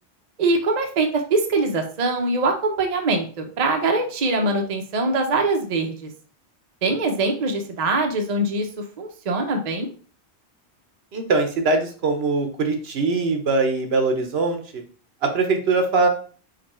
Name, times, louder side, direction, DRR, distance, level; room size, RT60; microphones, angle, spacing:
voice 1, 0.4-6.1 6.8-9.9, right 2 dB, 45° right, 3 dB, 0.7 m, -23 dB
voice 2, 11.1-14.8 15.2-16.1, right 3 dB, 65° right, 5 dB, 1.0 m, -22 dB
5.1 x 2.2 x 4.2 m, 0.41 s
omnidirectional pair, 1.1 m